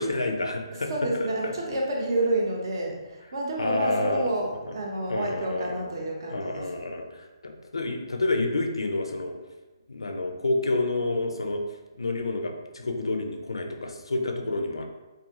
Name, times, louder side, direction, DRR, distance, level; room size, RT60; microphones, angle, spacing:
voice 1, 0.0-1.5 3.6-4.3 5.1-5.9 6.3-9.3 9.9-11.6 11.9-14.8, left 2 dB, 75° left, 3 dB, 0.4 m, -29 dB
voice 2, 0.9-6.7, right 1 dB, 55° right, -1 dB, 0.7 m, -29 dB
2.5 x 2.4 x 2.6 m, 1.2 s
figure-of-eight pair, 140°, 3 cm